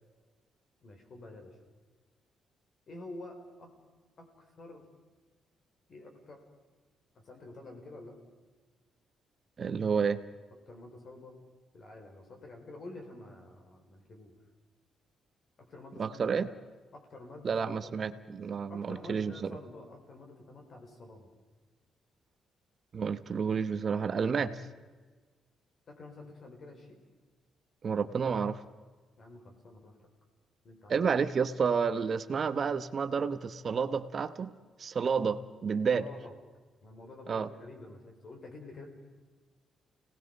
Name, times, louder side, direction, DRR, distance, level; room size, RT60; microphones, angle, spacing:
voice 1, 0.8-1.5 2.9-3.7 4.2-4.9 5.9-6.4 7.1-8.2 10.7-11.4 11.7-14.3 15.6-16.6 16.9-17.9 18.7-21.3 25.9-27.0 29.2-30.0 30.6-31.0 35.9-36.3 36.8-38.9, left 2 dB, 40° left, 3 dB, 4.8 m, -49 dB
voice 2, 9.6-10.2 16.0-16.5 17.4-19.3 22.9-24.6 27.8-28.6 30.9-34.5 34.8-36.0 37.3-37.5, right 6 dB, 35° right, 11 dB, 1.0 m, -30 dB
29.5 x 19.0 x 5.4 m, 1.4 s
cardioid pair, 160°, 0 cm